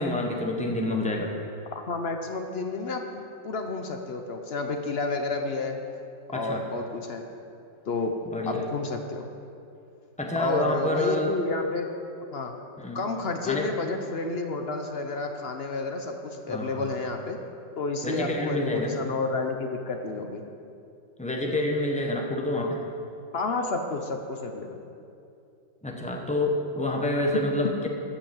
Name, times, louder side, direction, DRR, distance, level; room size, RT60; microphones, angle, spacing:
voice 1, 0.0-1.3 6.3-6.6 8.3-8.7 10.2-11.4 12.8-13.0 13.5-13.7 16.5-17.0 18.0-19.0 21.2-22.8 25.8-27.9, left 1 dB, 5° left, 1 dB, 0.7 m, -28 dB
voice 2, 1.7-5.8 6.3-7.2 7.9-8.1 8.5-9.3 10.4-11.9 12.3-12.5 12.9-17.4 17.8-20.4 23.3-24.8 27.3-27.4, left 3 dB, 55° left, 4 dB, 0.6 m, -30 dB
14.0 x 5.8 x 7.1 m, 2.6 s
omnidirectional pair, 2.0 m